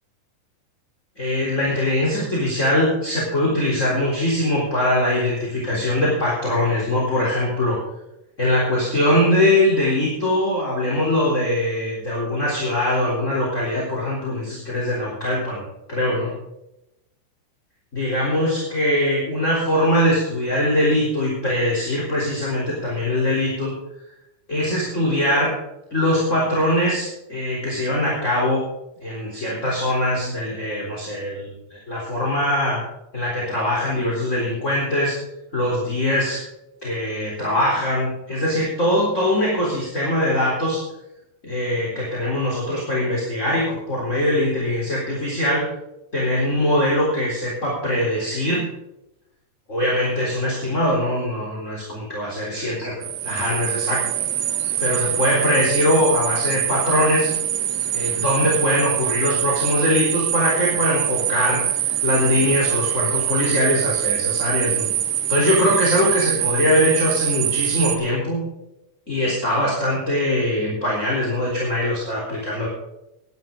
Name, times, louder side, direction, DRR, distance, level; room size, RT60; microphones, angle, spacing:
voice 1, 1.2-7.8 8.4-15.6 15.9-16.3 17.9-23.7 24.5-25.6 25.9-28.6 29.0-32.8 33.1-35.2 35.5-36.4 36.8-40.8 41.4-45.7 46.1-48.7 49.7-54.0 54.8-57.3 57.9-61.7 62.0-64.9 65.3-68.4 69.1-72.7, left 1 dB, 20° left, -5 dB, 3.9 m, -22 dB
sound 1, 53.0-68.0, right 11 dB, 80° right, 2.5 m, -24 dB
17.0 x 11.5 x 3.9 m, 0.88 s
omnidirectional pair, 3.6 m